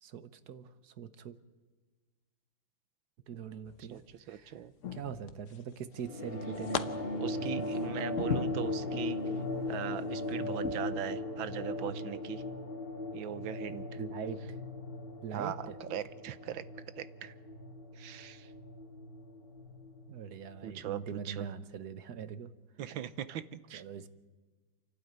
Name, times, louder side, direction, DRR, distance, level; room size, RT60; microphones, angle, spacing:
voice 1, 0.0-1.4 3.3-4.5 4.9-6.9 14.0-14.6 15.2-15.8 20.1-22.5 23.7-24.1, right 7 dB, 60° right, 12 dB, 1.4 m, -42 dB
sound 1, 3.7-4.1 4.8-5.7 6.1-6.8 7.3-9.1 9.6-9.8 10.6-10.8, left 7 dB, 50° left, 1.0 m, -38 dB
voice 2, 3.9-4.7 7.2-9.2 9.7-12.4 13.1-13.9 15.3-16.7 17.0-17.3 17.9-18.5 20.6-21.5 22.8-23.8, right 10 dB, 80° right, 14 dB, 1.6 m, -40 dB
sound 2, 6.0-20.9, left 2 dB, 30° left, 1.7 m, -38 dB
28.5 x 12.0 x 9.5 m, 1.4 s
omnidirectional pair, 2.1 m